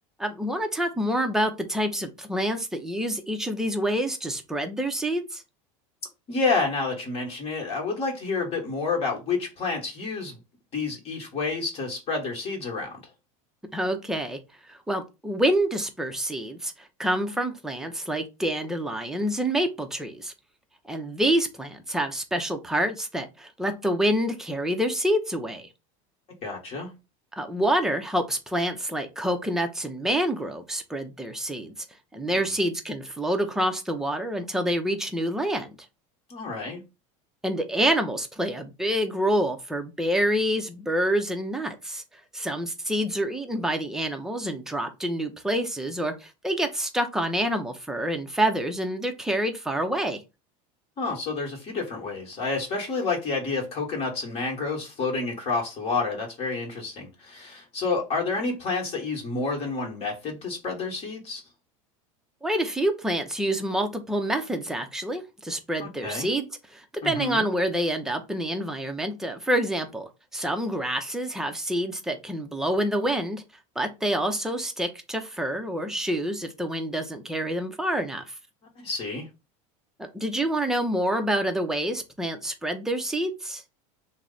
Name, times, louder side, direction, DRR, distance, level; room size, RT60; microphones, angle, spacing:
voice 1, 0.2-5.4 13.7-14.4 14.7-20.3 20.9-25.7 27.4-31.7 32.1-35.9 37.4-42.0 42.3-50.2 62.4-73.4 73.8-78.3 80.0-83.6, right 1 dB, 5° right, 0.5 m, -27 dB
voice 2, 6.3-10.4 10.7-13.0 26.4-26.9 36.3-36.8 51.0-61.4 65.8-66.3 67.0-67.4 78.8-79.3, left 4 dB, 35° left, 1.1 m, -29 dB
3.0 x 2.0 x 3.7 m
supercardioid pair, 125°, 17 cm